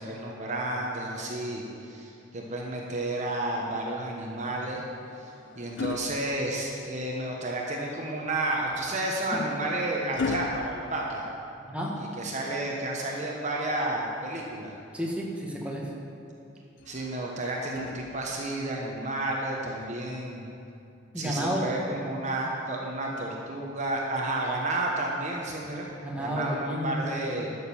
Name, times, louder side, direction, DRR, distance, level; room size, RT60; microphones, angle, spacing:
voice 1, 0.0-4.8 5.2-11.2 12.2-14.7 16.9-20.5 21.2-25.9 26.2-27.6, right 2 dB, 40° right, -1 dB, 1.1 m, -31 dB
sound 1, 4.6-7.1 8.7-11.9 13.6-14.8 16.8-18.6 19.8-20.0, left 5 dB, 65° left, 0.4 m, -39 dB
voice 2, 11.6-12.0 14.9-15.9 21.1-21.7 26.0-27.4, equal, 5° right, -3 dB, 1.5 m, -31 dB
12.0 x 6.7 x 7.0 m, 2.6 s
head